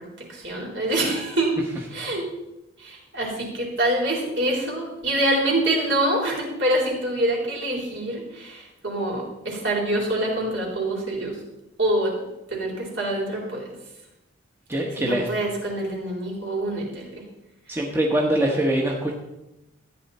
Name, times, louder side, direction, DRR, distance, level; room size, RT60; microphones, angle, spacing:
voice 1, 0.0-1.6 1.9-2.2 2.8-11.4 11.8-12.1 12.5-13.7 15.0-17.2, right 1 dB, 65° right, -2 dB, 4.0 m, -25 dB
voice 2, 14.7-15.3 17.7-19.1, right 1 dB, 10° right, -1 dB, 1.1 m, -23 dB
14.0 x 9.5 x 4.2 m, 0.95 s
head